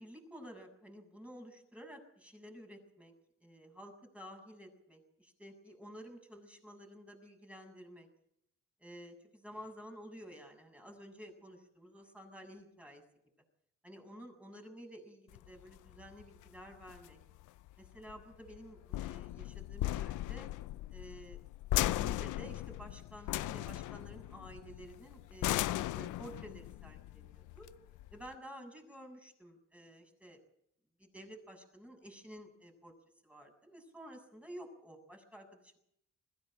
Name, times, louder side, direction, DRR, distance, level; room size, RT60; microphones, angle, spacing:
voice 1, 0.0-3.1 3.4-8.1 8.8-13.0 13.8-17.2 17.8-20.5 20.9-21.4 21.8-27.7 28.1-30.4 31.0-32.9 33.2-35.8, equal, 5° right, 3 dB, 7.2 m, -52 dB
sound 1, 15.3-28.3, left 15 dB, 85° left, 0.7 m, -38 dB
21.5 x 16.0 x 7.7 m, 0.72 s
cardioid pair, 90°, 30 cm